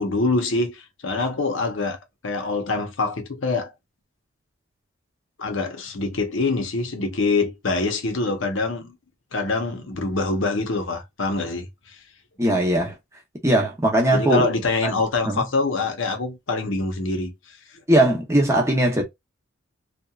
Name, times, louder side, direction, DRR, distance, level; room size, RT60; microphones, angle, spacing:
voice 1, 0.0-2.0 2.2-3.7 5.4-8.9 9.3-12.0 14.1-17.3, left 3 dB, 65° left, 0.8 m, -25 dB
voice 2, 12.4-12.9 13.4-14.5 14.8-14.9 15.2-15.4 17.9-19.0, right 1 dB, 15° right, 0.7 m, -19 dB
2.8 x 2.3 x 2.3 m
head